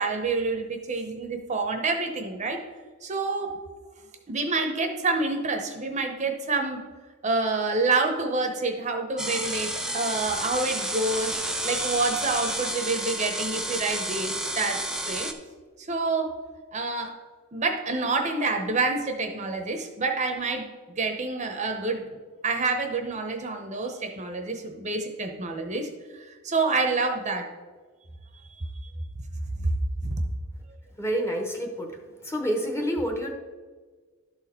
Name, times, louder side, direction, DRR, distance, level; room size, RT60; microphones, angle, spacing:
voice 1, 0.0-2.6 3.0-3.5 4.3-6.8 7.2-14.8 15.1-15.3 15.9-16.3 16.7-17.1 17.5-20.7 21.0-22.1 22.4-25.9 26.3-27.5 29.5-29.6 30.0-30.1, right 3 dB, 35° right, 5 dB, 0.8 m, -27 dB
sound 1, 9.2-15.3, right 1 dB, 5° right, 0.5 m, -31 dB
voice 2, 31.0-31.9 32.2-33.3, equal, 10° left, 3 dB, 0.9 m, -28 dB
12.0 x 4.1 x 4.4 m, 1.4 s
head